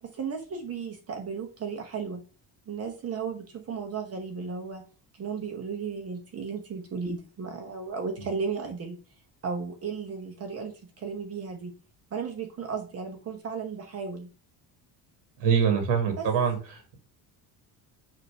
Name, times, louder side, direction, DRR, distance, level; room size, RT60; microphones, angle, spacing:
voice 1, 0.0-2.2 2.7-4.9 5.2-9.0 9.4-11.7 12.1-14.3 16.2-16.3, right 5 dB, 35° right, 3 dB, 1.1 m, -35 dB
voice 2, 15.4-17.0, right 7 dB, 85° right, 5 dB, 2.0 m, -25 dB
6.7 x 3.0 x 5.6 m, 0.34 s
cardioid pair, 160°, 42 cm